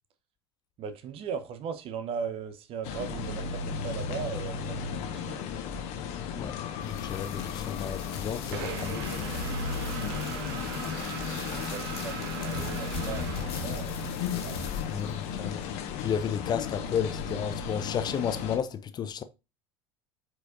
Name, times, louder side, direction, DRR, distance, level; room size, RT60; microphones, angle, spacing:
voice 1, 0.8-5.5 11.7-14.7, right 6 dB, 45° right, 1.0 m, -38 dB
sound 1, 2.8-18.6, left 6 dB, 55° left, 1.3 m, -35 dB
sound 2, 6.8-17.8, left 6 dB, 70° left, 1.9 m, -41 dB
voice 2, 6.8-9.1 14.9-15.6 16.0-19.2, left 8 dB, 30° left, 0.5 m, -32 dB
sound 3, 8.5-14.1, right 9 dB, 60° right, 0.9 m, -39 dB
7.8 x 4.8 x 2.6 m
figure-of-eight pair, 75°, 14 cm